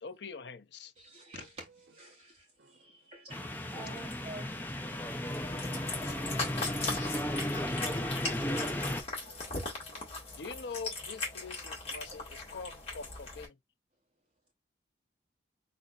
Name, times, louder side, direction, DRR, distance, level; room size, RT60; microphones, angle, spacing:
voice 1, 0.0-0.9 10.4-13.6, left 5 dB, 70° left, 0.6 m, -44 dB
voice 2, 1.0-5.0 12.1-12.2, right 2 dB, 30° right, 2.9 m, -50 dB
voice 3, 2.6-2.9 4.8-5.0 9.2-9.7, right 2 dB, 75° right, 0.8 m, -63 dB
sound 1, 3.3-9.0, left 1 dB, 10° left, 0.6 m, -35 dB
Cat, 5.3-13.5, left 3 dB, 35° left, 1.9 m, -39 dB
4.1 x 3.9 x 2.4 m
head